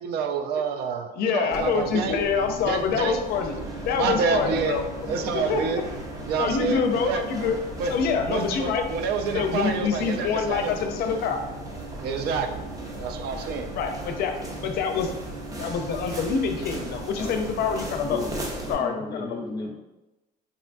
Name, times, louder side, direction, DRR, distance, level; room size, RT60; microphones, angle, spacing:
voice 1, 0.0-2.2 2.7-3.2 4.0-4.8 5.1-5.8 6.3-6.8 7.0-7.2 7.8-7.9 8.3-10.7 12.0-12.7 13.0-13.7, right 5 dB, 75° right, 6 dB, 0.4 m, -28 dB
voice 2, 1.1-3.5 3.8-4.8 5.3-5.6 6.3-7.6 7.9-8.8 9.3-11.4 13.7-14.3 14.6-15.1 15.6-18.2 18.7-19.4, left 6 dB, 70° left, 5 dB, 0.5 m, -26 dB
sound 1, 1.5-18.7, right 2 dB, 20° right, 0.6 m, -36 dB
voice 3, 18.6-19.7, left 2 dB, 25° left, 0 dB, 0.6 m, -34 dB
3.6 x 2.2 x 2.5 m, 1.0 s
cardioid pair, 110°, 17 cm